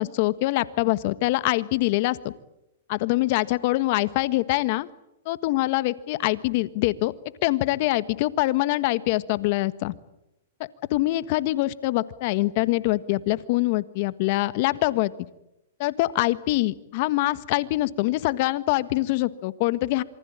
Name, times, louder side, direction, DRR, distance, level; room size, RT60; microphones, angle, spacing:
voice 1, 0.0-2.3 2.9-4.9 5.3-7.1 7.4-9.9 10.9-15.1 15.8-20.0, left 18 dB, 50° left, 15 dB, 1.5 m, -24 dB
27.5 x 24.0 x 8.9 m, 0.85 s
hypercardioid pair, 135°, 0 cm